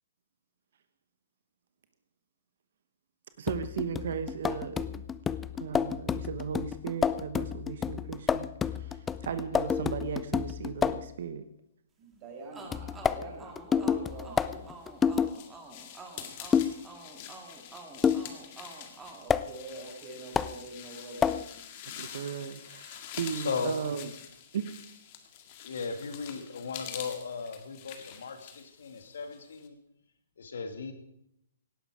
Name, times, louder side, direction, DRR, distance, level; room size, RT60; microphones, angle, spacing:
voice 1, 3.4-5.0 5.6-8.5 8.7-11.4 22.0-24.1 24.5-24.8, right 7 dB, 60° right, 10 dB, 1.0 m, -36 dB
sound 1, 3.5-11.1 12.7-15.3 16.5-16.8 18.0-18.3 19.3-19.5 20.4-20.5 21.2-21.5, left 7 dB, 15° left, 0.4 m, -29 dB
voice 2, 12.0-14.8 19.2-21.4, right 2 dB, 30° right, 0 dB, 5.3 m, -44 dB
sound 2, 12.5-20.1, right 3 dB, 10° right, 2.2 m, -49 dB
sound 3, 14.5-29.7, left 9 dB, 40° left, 1.9 m, -46 dB
voice 3, 23.3-23.7 25.6-29.8 30.4-30.9, left 5 dB, 70° left, 6 dB, 2.2 m, -36 dB
17.5 x 11.0 x 5.0 m, 0.77 s
hypercardioid pair, 140°, 0 cm